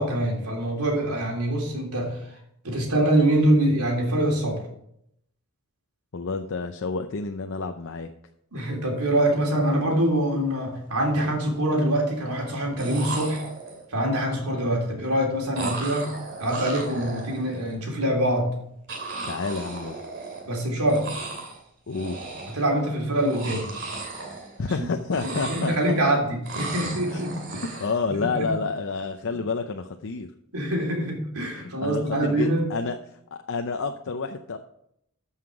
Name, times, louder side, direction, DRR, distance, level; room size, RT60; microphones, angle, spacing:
voice 1, 0.0-2.2 2.6-4.6 8.5-13.4 13.9-16.1 16.4-18.5 20.5-21.0 22.5-23.7 24.8-24.9 25.2-27.6 28.1-28.5 30.5-32.7, right 1 dB, 85° right, 0 dB, 3.3 m, -24 dB
voice 2, 6.1-8.1 19.3-20.0 21.9-22.2 24.6-26.0 27.1-27.2 27.8-30.3 31.5-33.0 33.3-34.6, left 4 dB, 60° left, 5 dB, 0.6 m, -29 dB
sound 1, 10.5-10.6 10.9-11.5 12.5-12.6 12.8-14.0 15.6-17.8 18.9-20.6 20.9-21.6 21.9-22.7 23.1-24.8 25.1-26.1 26.5-28.0, right 3 dB, 55° right, 2.4 m, -36 dB
13.5 x 5.7 x 4.9 m, 0.75 s
head